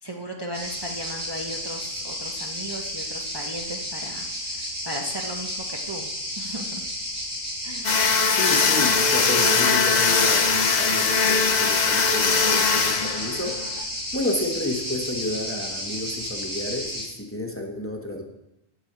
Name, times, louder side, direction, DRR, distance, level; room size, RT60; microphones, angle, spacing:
voice 1, 0.0-6.1 6.4-6.8 7.6-8.2, equal, 25° right, 0 dB, 0.9 m, -36 dB
sound 1, 0.5-17.0, equal, 70° right, 4.6 m, -32 dB
sound 2, 7.8-13.8, left 5 dB, 45° left, 0.8 m, -21 dB
voice 2, 8.3-13.7 14.1-18.2, left 1 dB, 10° left, 2 dB, 1.1 m, -31 dB
10.5 x 4.7 x 8.0 m, 0.88 s
omnidirectional pair, 1.1 m